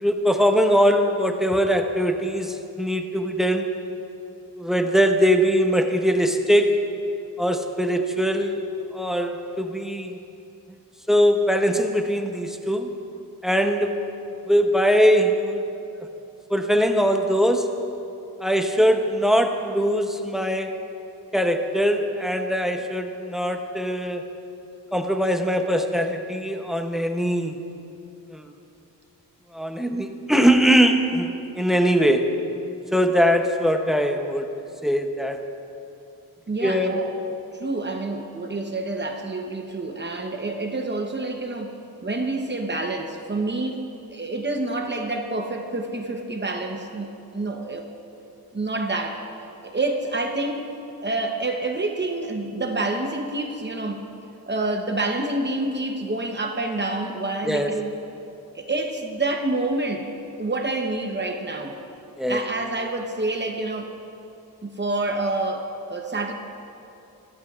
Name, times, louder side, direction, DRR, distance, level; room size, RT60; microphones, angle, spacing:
voice 1, 0.0-3.7 4.6-6.8 7.4-8.6 8.9-10.2 11.1-12.9 13.4-14.0 14.5-15.6 16.5-17.7 18.4-20.7 21.3-24.2 24.9-27.6 28.3-28.5 29.5-32.3 32.9-34.5 34.8-35.4 36.6-36.9 57.4-57.7 62.2-62.4, equal, ahead, 4 dB, 0.7 m, -21 dB
voice 2, 36.5-37.1 37.6-41.7 42.0-43.8 44.1-47.9 48.5-49.2 49.6-50.7 51.0-54.0 54.5-57.9 58.5-60.1 60.4-61.8 62.3-64.0 64.6-66.3, right 2 dB, 30° right, 3 dB, 0.9 m, -27 dB
23.0 x 14.5 x 2.4 m, 2.8 s
wide cardioid pair, 160°, 37 cm